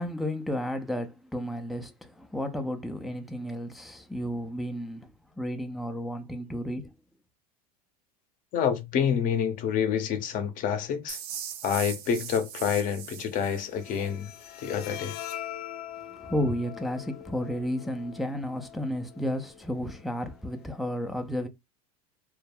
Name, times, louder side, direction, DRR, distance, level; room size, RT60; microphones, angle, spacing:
voice 1, 0.0-5.1 5.4-6.9 16.1-21.5, equal, ahead, 0.4 m, -32 dB
voice 2, 8.5-11.2 11.6-14.3 14.6-15.2, left 8 dB, 45° left, 0.6 m, -28 dB
sound 1, 11.1-14.1, right 9 dB, 65° right, 0.6 m, -39 dB
Bowed string instrument, 13.6-20.6, left 11 dB, 85° left, 0.4 m, -43 dB
2.2 x 2.1 x 3.2 m
hypercardioid pair, 100°, 19 cm